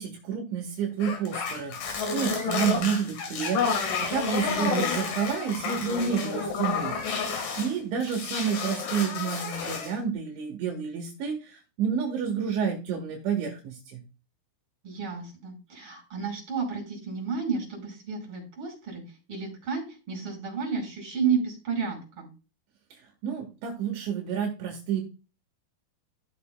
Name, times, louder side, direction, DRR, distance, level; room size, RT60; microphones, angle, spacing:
voice 1, 0.0-3.7 4.1-6.9 7.6-14.0 22.9-25.0, right 7 dB, 75° right, 1 dB, 3.8 m, -30 dB
sound 1, 1.0-7.7 8.0-10.0, left 5 dB, 55° left, 2.6 m, -30 dB
voice 2, 4.4-4.9 14.8-19.0 19.3-22.3, right 5 dB, 30° right, 1 dB, 5.3 m, -31 dB
14.5 x 6.8 x 2.3 m, 0.31 s
omnidirectional pair, 5.5 m